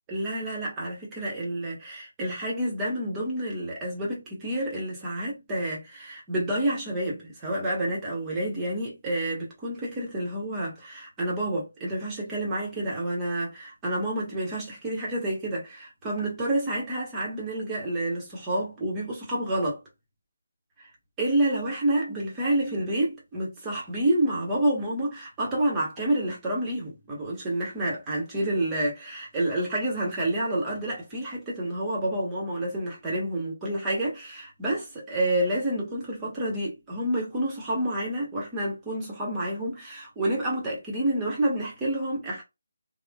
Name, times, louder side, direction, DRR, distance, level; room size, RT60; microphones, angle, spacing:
voice 1, 0.1-19.8 20.8-20.9 21.2-42.4, right 1 dB, 15° right, 0.9 m, -29 dB
2.9 x 2.1 x 2.3 m
figure-of-eight pair, 160°, 0 cm